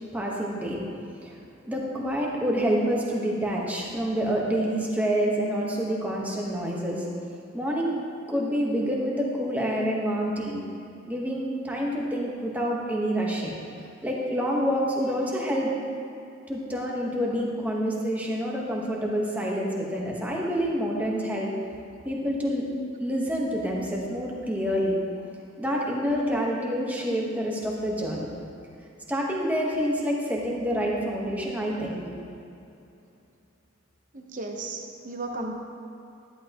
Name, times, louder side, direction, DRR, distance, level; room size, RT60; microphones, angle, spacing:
voice 1, 0.1-0.8 1.1-1.4 1.6-7.1 7.5-8.0 8.3-10.6 11.0-13.6 14.0-15.7 16.5-21.5 22.0-22.7 23.0-25.0 25.6-28.3 29.1-32.1, equal, 10° right, -3 dB, 1.1 m, -27 dB
voice 2, 34.1-35.5, right 2 dB, 40° right, 2 dB, 0.9 m, -34 dB
11.0 x 11.0 x 3.0 m, 2.7 s
head